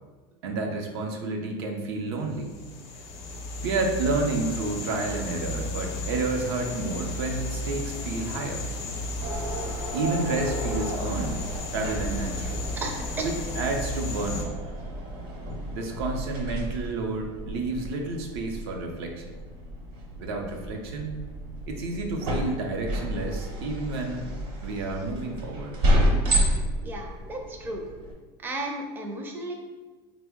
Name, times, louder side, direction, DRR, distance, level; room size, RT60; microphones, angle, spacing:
voice 1, 0.4-2.5 3.6-8.6 9.9-12.6 13.2-14.5 15.7-19.3 20.2-21.2 21.7-24.3 24.6-25.8 26.1-26.4, right 3 dB, 90° right, 2 dB, 0.5 m, -30 dB
sound 1, 2.3-14.5, left 2 dB, 50° left, 0.6 m, -34 dB
sound 2, 9.2-28.1, equal, 70° right, 1.0 m, -31 dB
voice 2, 12.8-13.3 26.8-27.8 28.4-29.5, right 2 dB, 15° right, 1 dB, 0.4 m, -34 dB
3.7 x 2.0 x 3.4 m, 1.3 s
supercardioid pair, 130°, 13 cm